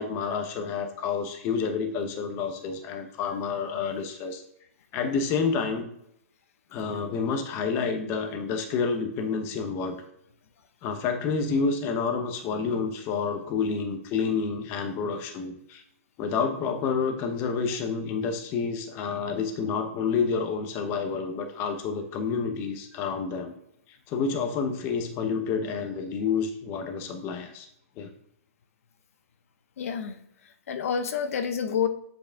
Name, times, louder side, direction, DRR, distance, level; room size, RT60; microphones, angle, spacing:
voice 1, 0.0-4.4 4.9-5.9 6.7-10.0 10.8-15.8 16.2-23.5 23.9-27.7 28.0-28.1, left 5 dB, 30° left, 6 dB, 0.8 m, -29 dB
voice 2, 29.8-30.2 30.7-31.9, left 7 dB, 65° left, 10 dB, 0.8 m, -28 dB
7.6 x 4.6 x 3.5 m, 0.74 s
hypercardioid pair, 150°, 8 cm